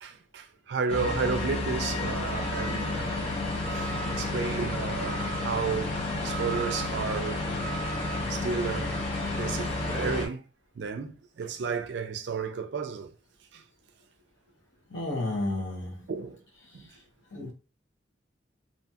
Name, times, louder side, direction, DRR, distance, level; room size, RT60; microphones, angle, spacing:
voice 1, 0.0-3.2 3.7-6.0 6.2-7.4 8.2-8.9 9.3-10.4 10.8-13.1 13.5-13.6 16.1-16.4 16.7-16.9, right 5 dB, 65° right, 0.4 m, -32 dB
sound 1, 0.9-10.3, left 2 dB, 35° left, 0.6 m, -31 dB
voice 2, 14.9-16.1 17.3-17.5, left 2 dB, 85° left, 0.9 m, -31 dB
2.7 x 2.7 x 2.2 m
head